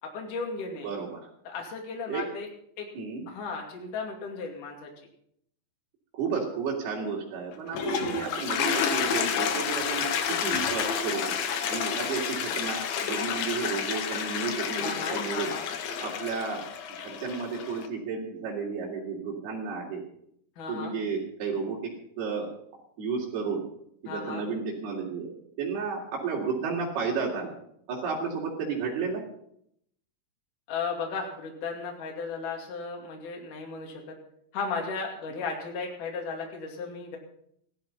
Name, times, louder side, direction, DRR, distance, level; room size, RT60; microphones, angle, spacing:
voice 1, 0.0-0.9 1.4-2.5 2.8-2.9 3.3-4.9 14.8-15.7 20.6-20.9 24.1-24.5 30.7-34.2 34.5-37.2, left 4 dB, 50° left, 0 dB, 3.8 m, -35 dB
voice 2, 0.8-1.3 2.1-2.3 2.9-3.2 6.1-11.4 11.7-15.5 16.0-16.7 17.0-20.0 20.7-22.5 23.0-23.6 24.0-25.3 25.6-27.6 27.9-29.2, right 5 dB, 65° right, -4 dB, 4.7 m, -32 dB
Toilet flush, 7.5-17.9, left 7 dB, 70° left, 3.1 m, -30 dB
16.0 x 12.5 x 5.7 m, 0.69 s
omnidirectional pair, 4.9 m